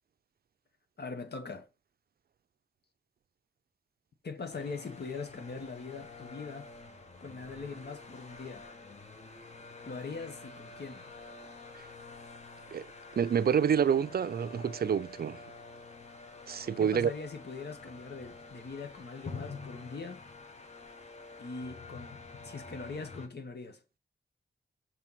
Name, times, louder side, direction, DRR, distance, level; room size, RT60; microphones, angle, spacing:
voice 1, 1.0-1.7 4.2-6.7 7.2-8.7 9.8-11.1 16.8-20.2 21.4-23.8, left 4 dB, 65° left, 1.6 m, -42 dB
sound 1, 4.5-23.3, left 3 dB, 35° left, 1.3 m, -48 dB
voice 2, 13.2-15.4 16.5-17.1, right 8 dB, 55° right, 0.4 m, -28 dB
6.5 x 4.5 x 5.7 m
wide cardioid pair, 130°, 18 cm